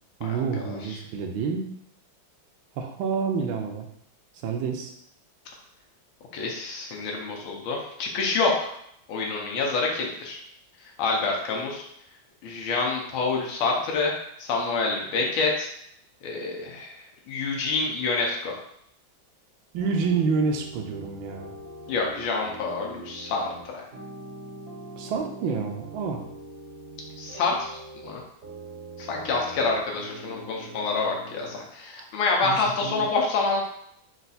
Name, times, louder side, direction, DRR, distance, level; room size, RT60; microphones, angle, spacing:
voice 1, 0.2-1.7 2.8-3.9 4.4-4.9 19.7-21.5 25.0-26.2 32.4-33.1, right 5 dB, 90° right, 3 dB, 1.4 m, -28 dB
voice 2, 6.3-8.7 9.1-10.4 11.0-11.9 12.4-14.1 14.4-15.7 16.2-18.5 21.9-23.4 23.7-23.8 27.2-27.8 28.0-28.2 29.0-33.6, left 3 dB, 90° left, -1 dB, 1.6 m, -27 dB
sound 1, 19.8-31.6, right 2 dB, 50° right, 0.8 m, -42 dB
4.5 x 2.4 x 4.0 m, 0.72 s
omnidirectional pair, 2.2 m